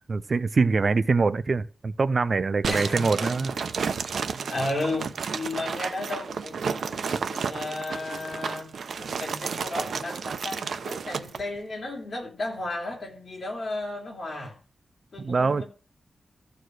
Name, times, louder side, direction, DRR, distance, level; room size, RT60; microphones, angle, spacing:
voice 1, 0.0-3.5 15.2-15.6, right 4 dB, 40° right, 0.5 m, -24 dB
sound 1, 2.6-11.4, right 6 dB, 75° right, 0.8 m, -32 dB
voice 2, 2.7-3.4 4.3-8.7 9.0-14.6 15.1-15.6, left 2 dB, 45° left, 3.5 m, -34 dB
14.5 x 4.8 x 6.4 m
wide cardioid pair, 140°, 0 cm